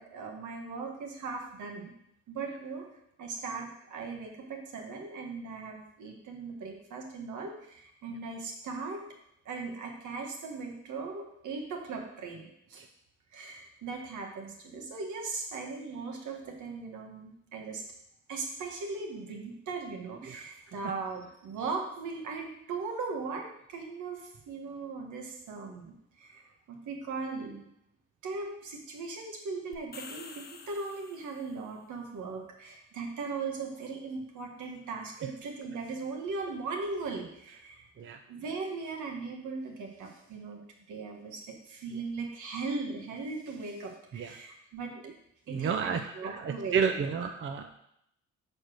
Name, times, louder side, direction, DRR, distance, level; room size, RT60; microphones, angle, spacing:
voice 1, 0.0-1.9 2.3-2.9 3.2-9.1 9.4-12.8 13.3-17.8 18.3-27.7 28.2-37.9 38.3-40.6 40.9-44.9 45.5-46.8, right 4 dB, 75° right, 2 dB, 1.6 m, -38 dB
sound 1, 29.7-31.7, left 4 dB, 30° left, 1.0 m, -48 dB
voice 2, 45.5-47.7, right 6 dB, 40° right, 6 dB, 0.6 m, -31 dB
6.5 x 4.3 x 6.3 m, 0.77 s
cardioid pair, 90°, 30 cm